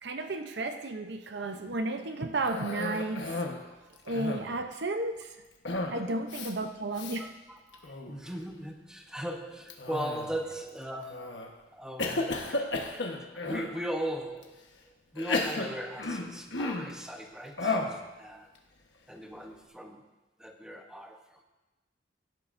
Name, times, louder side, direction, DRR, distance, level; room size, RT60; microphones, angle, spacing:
voice 1, 0.0-3.4 4.0-5.4 5.9-7.3, right 2 dB, 70° right, 7 dB, 0.7 m, -33 dB
Cough, 2.4-3.6 4.0-4.6 5.7-6.0 6.3-6.5 7.0-7.2 7.7-8.2 9.7-10.5 11.1-11.5 12.0-13.8 14.4-14.5 15.2-17.0 17.6-18.0, left 2 dB, 90° left, 1.3 m, -33 dB
voice 2, 3.7-4.0 5.9-6.2 7.2-12.7 13.3-18.6 19.1-20.0 20.4-21.4, equal, 5° right, 3 dB, 0.9 m, -39 dB
16.5 x 11.0 x 2.6 m, 1.1 s
head